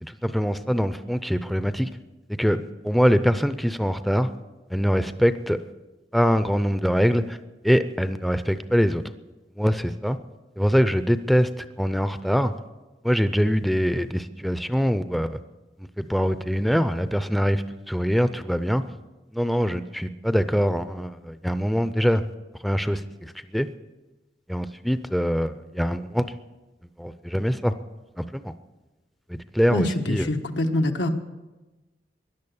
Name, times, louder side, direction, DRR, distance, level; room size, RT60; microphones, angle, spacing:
voice 1, 0.0-1.9 2.3-4.3 4.7-5.6 6.1-7.4 7.6-9.0 9.6-10.2 10.6-12.5 13.0-15.4 16.0-18.8 19.3-22.2 22.6-23.7 24.5-26.3 27.0-27.7 28.2-28.5 29.3-30.2, equal, ahead, 11 dB, 0.5 m, -23 dB
voice 2, 29.7-31.1, left 1 dB, 90° left, 4 dB, 1.4 m, -25 dB
17.5 x 11.5 x 7.1 m, 1.1 s
head